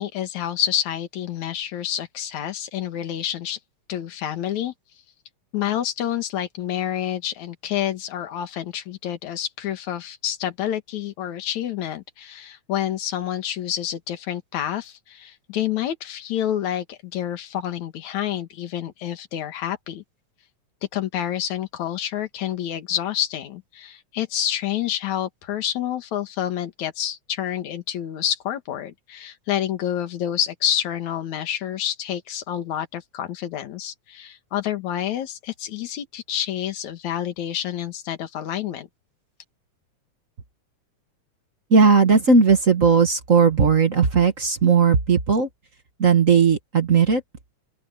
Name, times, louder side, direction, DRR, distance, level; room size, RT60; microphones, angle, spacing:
voice 1, 0.0-3.6 3.9-4.7 5.5-20.0 20.9-38.9, left 11 dB, 75° left, 3.0 m, -28 dB
voice 2, 41.7-45.5 46.0-47.2, right 5 dB, 40° right, 1.2 m, -17 dB
open air
omnidirectional pair, 3.4 m